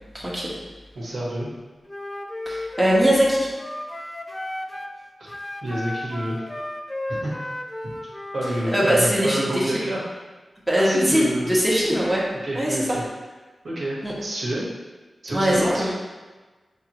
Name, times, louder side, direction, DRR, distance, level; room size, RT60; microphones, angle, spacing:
voice 1, 0.1-0.5 2.5-3.5 8.7-9.6 10.7-12.2 12.5-12.8 14.0-14.1 15.3-15.9, equal, 10° right, -6 dB, 1.3 m, -21 dB
voice 2, 0.9-1.5 5.2-5.3 5.6-6.4 7.2-7.3 8.3-10.0 10.7-11.9 12.4-13.0 13.6-14.6 15.2-15.9, right 1 dB, 80° right, -6 dB, 1.3 m, -28 dB
Wind instrument woodwind instrument, 1.9-5.0 5.3-8.7, left 1 dB, 20° left, 0.4 m, -33 dB
5.4 x 3.0 x 3.0 m, 1.3 s
cardioid pair, 55°, 0 cm